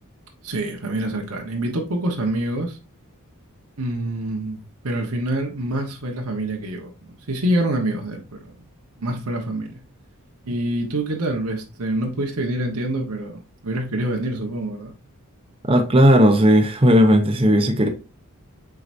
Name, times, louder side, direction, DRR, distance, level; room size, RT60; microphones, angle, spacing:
voice 1, 0.4-2.8 3.8-4.6 4.8-8.4 9.0-9.8 10.4-14.9, right 1 dB, 90° right, 1.3 m, -26 dB
voice 2, 15.6-17.9, equal, 25° right, 0.8 m, -15 dB
7.9 x 4.8 x 2.7 m
head